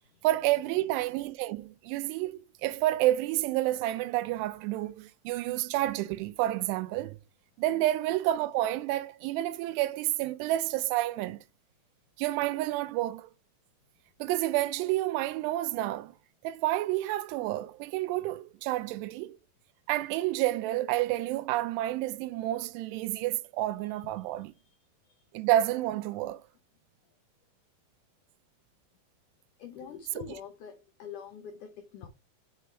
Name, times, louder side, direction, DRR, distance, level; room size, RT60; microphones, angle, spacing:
voice 1, 0.2-7.2 7.6-11.4 12.2-13.3 14.2-16.1 16.4-19.4 19.9-24.5 25.3-26.4 30.2-30.3, right 15 dB, 85° right, 2.6 m, -29 dB
voice 2, 24.4-24.8 25.0-25.2 29.6-32.1, left 7 dB, 80° left, 1.8 m, -46 dB
6.8 x 5.6 x 3.2 m
omnidirectional pair, 4.8 m